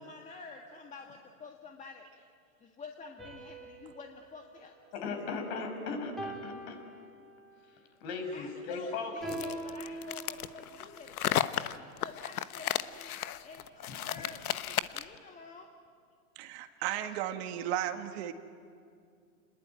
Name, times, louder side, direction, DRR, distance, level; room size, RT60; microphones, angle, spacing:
voice 1, 0.0-2.3 2.6-4.8 8.3-15.7, left 4 dB, 15° left, 2 dB, 1.8 m, -49 dB
sound 1, 3.2-5.6 6.2-7.6 9.2-10.9, right 1 dB, ahead, 4.0 m, -44 dB
voice 2, 4.9-6.8 8.0-9.4 13.9-14.0, left 4 dB, 50° left, 5 dB, 6.2 m, -37 dB
sound 2, 9.3-15.2, left 11 dB, 75° left, 1.2 m, -34 dB
voice 3, 16.4-18.3, right 11 dB, 45° right, 7 dB, 1.9 m, -35 dB
29.0 x 20.5 x 9.3 m, 2.3 s
hypercardioid pair, 130°, 44 cm